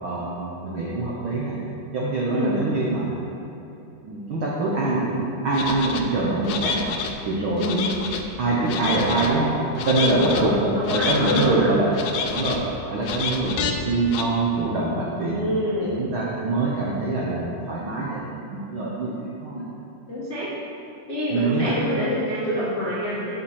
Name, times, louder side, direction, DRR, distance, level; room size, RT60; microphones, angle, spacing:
voice 1, 0.0-1.6 1.9-3.2 4.0-6.8 7.2-7.8 8.4-9.6 9.9-11.9 12.2-12.6 12.9-15.4 15.8-18.2 18.5-19.7 21.3-21.8, right 2 dB, 80° right, -5 dB, 1.1 m, -24 dB
sound 1, 5.5-6.0 6.4-7.1 7.6-8.2 8.7-9.3 9.8-10.4 10.8-11.5 11.9-12.6 13.0-13.7 14.1-14.2, left 6 dB, 90° left, 1.5 m, -28 dB
voice 2, 7.4-7.9 10.0-11.7 15.3-16.0 20.1-20.5 21.1-23.3, left 1 dB, 70° left, -10 dB, 0.5 m, -26 dB
7.3 x 5.7 x 6.3 m, 2.8 s
omnidirectional pair, 3.8 m